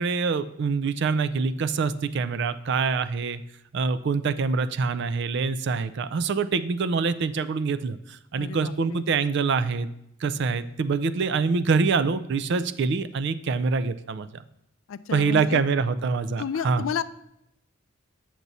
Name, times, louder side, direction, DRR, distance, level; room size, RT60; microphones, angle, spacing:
voice 1, 0.0-3.4 3.7-9.9 10.2-14.4 15.1-16.9, right 4 dB, 55° right, 14 dB, 0.4 m, -25 dB
voice 2, 8.4-9.0 14.9-15.6 16.4-17.0, left 7 dB, 70° left, 14 dB, 0.4 m, -31 dB
7.9 x 6.0 x 4.1 m, 0.80 s
head